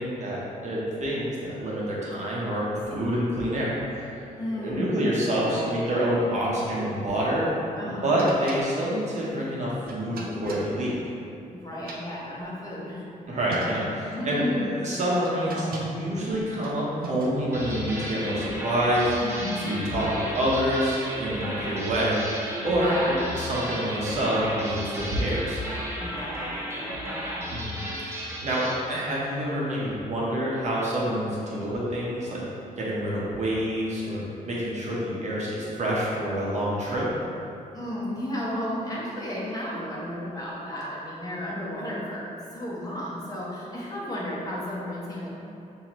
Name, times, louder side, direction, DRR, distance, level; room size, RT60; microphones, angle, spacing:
voice 1, 0.0-3.7 4.1-4.2 4.5-7.5 7.8-11.0 13.3-19.1 19.6-22.9 23.4-25.6 27.5-32.4 32.8-37.1, equal, 50° right, -6 dB, 0.9 m, -27 dB
voice 2, 4.4-5.9 7.8-8.2 11.5-13.0 14.1-14.7 19.2-20.1 22.7-23.3 26.0-27.4 37.7-45.3, left 1 dB, 25° left, -6 dB, 1.0 m, -33 dB
sound 1, 8.2-11.5 11.7-12.8 13.2-13.3 13.5-14.1 14.8-17.6, right 1 dB, 85° right, 0.6 m, -39 dB
sound 2, 17.5-28.8, equal, 15° right, 0.7 m, -34 dB
5.5 x 2.7 x 3.1 m, 2.7 s
wide cardioid pair, 130°, 15 cm